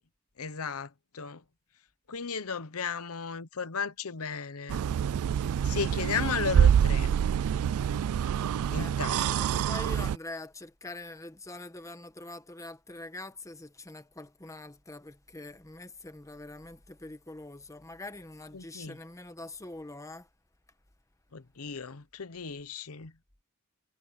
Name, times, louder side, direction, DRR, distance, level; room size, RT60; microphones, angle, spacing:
voice 1, 0.4-0.9 1.1-1.4 2.1-4.8 5.6-7.1 8.7-9.6 18.5-18.9 21.3-23.1, left 6 dB, 75° left, 0.9 m, -35 dB
sound 1, 4.7-10.2, right 8 dB, 70° right, 0.3 m, -26 dB
voice 2, 9.4-20.3, left 2 dB, 15° left, 1.2 m, -44 dB
head